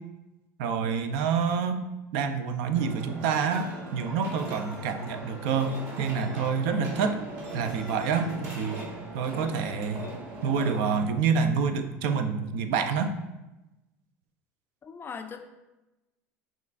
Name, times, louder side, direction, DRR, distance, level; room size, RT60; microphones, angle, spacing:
voice 1, 0.6-1.8 2.1-7.2 7.5-8.8 9.1-10.0 10.4-13.2, right 6 dB, 70° right, 8 dB, 0.4 m, -27 dB
sound 1, 2.7-11.0, right 1 dB, 40° right, 1.5 m, -40 dB
voice 2, 14.8-15.4, left 6 dB, 25° left, 7 dB, 0.4 m, -39 dB
6.2 x 2.4 x 2.4 m, 1.0 s
hypercardioid pair, 90°, 8 cm